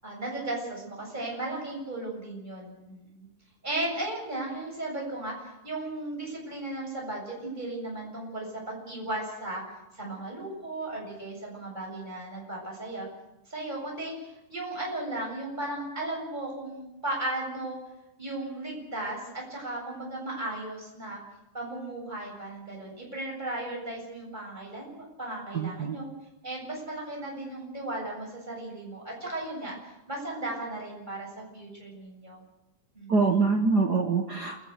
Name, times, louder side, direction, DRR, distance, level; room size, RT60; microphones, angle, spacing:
voice 1, 0.0-3.3 3.6-9.6 9.9-13.1 13.5-17.8 18.2-21.2 21.5-26.1 26.4-29.8 30.1-32.4 32.9-33.1, right 2 dB, 10° right, -2 dB, 7.9 m, -36 dB
voice 2, 25.5-26.0 33.1-34.6, right 4 dB, 70° right, 4 dB, 0.9 m, -25 dB
29.0 x 14.5 x 8.2 m, 0.92 s
omnidirectional pair, 3.9 m